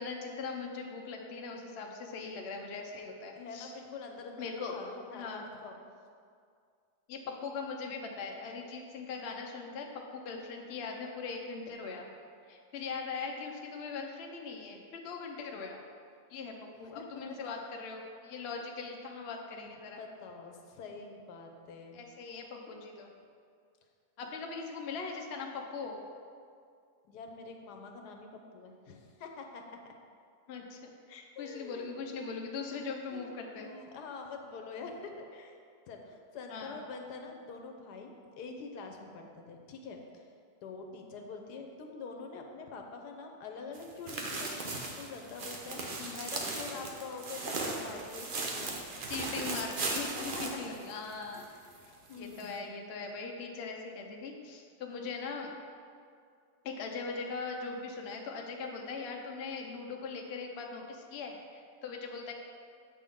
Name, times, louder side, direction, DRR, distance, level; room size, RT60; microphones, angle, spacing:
voice 1, 0.0-3.7 4.4-4.8 5.1-5.4 7.1-12.1 12.5-15.8 16.3-16.5 16.8-20.0 21.9-23.1 24.2-26.0 30.5-33.7 36.5-36.8 46.0-46.2 49.1-50.3 50.6-51.4 52.2-55.5 56.6-62.3, left 4 dB, 50° left, 1 dB, 0.8 m, -40 dB
voice 2, 3.3-5.8 16.9-17.4 19.8-22.0 27.1-29.7 31.4-31.9 32.6-35.6 35.9-40.2 40.6-45.8 46.2-48.7 50.2-50.4 51.3-51.8 52.1-52.6, left 4 dB, 85° left, 3 dB, 1.3 m, -45 dB
sound 1, 43.7-51.4 51.8-51.9 52.4-52.5, right 3 dB, 45° right, 0.7 m, -37 dB
7.9 x 6.0 x 3.6 m, 2.2 s
omnidirectional pair, 1.7 m